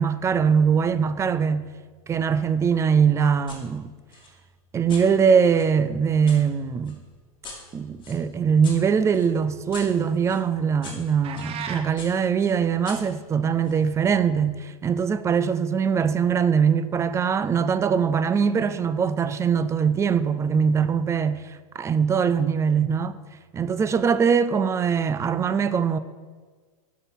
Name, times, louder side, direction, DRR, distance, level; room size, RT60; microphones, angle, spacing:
voice 1, 0.0-1.7 2.1-3.9 4.7-7.0 7.7-23.2 23.5-26.0, right 6 dB, 15° right, 0.3 m, -22 dB
sound 1, 3.5-3.6 4.1-6.4 6.8-11.5 12.0-13.8, left 4 dB, 25° left, 2.3 m, -44 dB
sound 2, 11.2-11.9, right 7 dB, 30° right, 0.9 m, -34 dB
7.9 x 5.7 x 6.1 m
hypercardioid pair, 110°, 19 cm